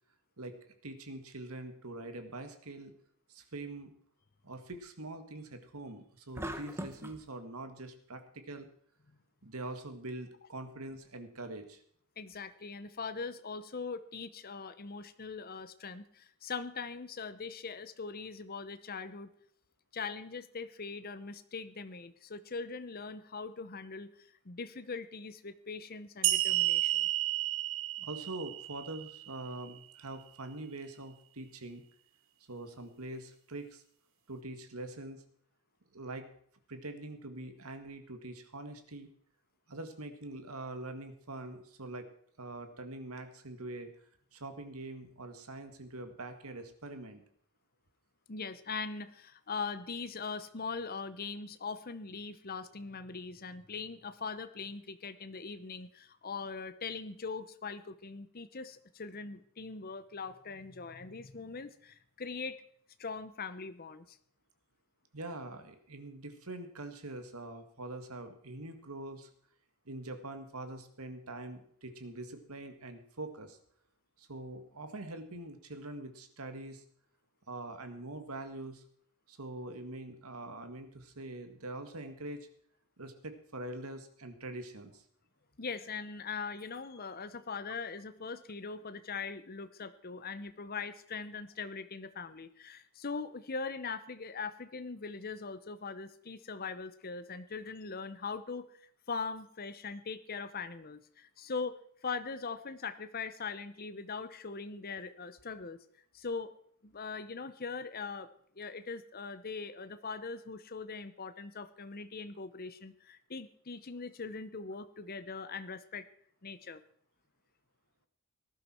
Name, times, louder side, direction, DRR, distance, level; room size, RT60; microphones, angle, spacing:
voice 1, 0.8-2.9 3.3-3.9 4.4-8.7 9.4-11.8 28.0-31.8 32.5-33.8 34.3-35.2 35.9-36.3 36.7-39.1 39.7-42.1 42.4-43.9 44.3-47.2 65.1-69.3 69.9-73.6 74.2-76.8 77.5-78.8 79.3-82.5 83.0-85.0, right 2 dB, 75° right, 7 dB, 1.9 m, -44 dB
sound 1, 6.4-7.2, right 1 dB, 10° right, 1.0 m, -40 dB
voice 2, 12.2-19.3 19.9-27.1 48.3-62.6 63.0-64.2 85.6-101.8 102.0-105.8 106.1-106.5 106.8-108.3 108.6-116.1 116.4-116.8, left 4 dB, 40° left, 11 dB, 0.8 m, -41 dB
sound 2, 26.2-29.6, right 15 dB, 60° right, 1.0 m, -31 dB
18.5 x 11.5 x 4.5 m, 0.62 s
head